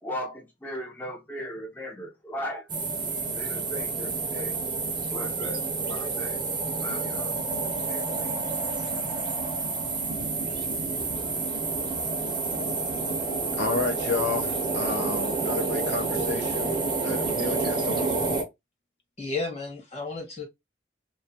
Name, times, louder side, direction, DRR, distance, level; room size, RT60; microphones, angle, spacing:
voice 1, 0.0-2.7 3.3-4.6 5.1-6.4 6.8-7.4 7.6-8.3, equal, 10° left, 0.6 m, -37 dB
sound 1, 2.7-18.4, right 3 dB, 25° right, 0.6 m, -29 dB
voice 2, 13.5-18.1, left 3 dB, 85° left, 0.7 m, -31 dB
voice 3, 19.2-20.4, left 3 dB, 35° left, 1.2 m, -32 dB
2.5 x 2.4 x 2.7 m
head